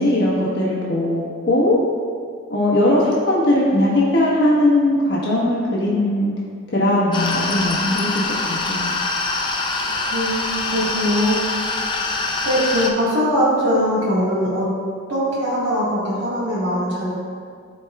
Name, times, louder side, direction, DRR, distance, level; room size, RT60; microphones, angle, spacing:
voice 1, 0.0-1.8 2.5-6.3 6.7-8.8, left 1 dB, 55° left, -6 dB, 1.4 m, -19 dB
sound 1, 7.1-12.9, left 3 dB, 25° left, 0.5 m, -24 dB
voice 2, 9.8-11.5 12.4-14.7 15.1-17.1, equal, 70° right, -9 dB, 1.6 m, -21 dB
13.0 x 4.5 x 2.4 m, 2.1 s
head